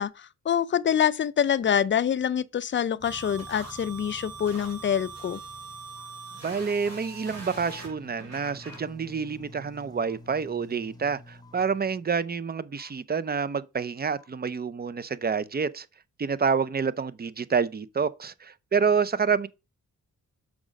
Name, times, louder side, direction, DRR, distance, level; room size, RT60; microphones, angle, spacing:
voice 1, 0.0-5.4, left 8 dB, 40° left, 0.5 m, -26 dB
sound 1, 3.0-12.1 12.8-12.9 14.1-14.3, left 1 dB, 10° left, 0.9 m, -50 dB
sound 2, 3.0-8.8, right 3 dB, 55° right, 2.9 m, -42 dB
voice 2, 6.4-15.9 16.2-19.5, right 6 dB, 30° right, 0.5 m, -28 dB
6.1 x 4.8 x 5.0 m
cardioid pair, 90°, 31 cm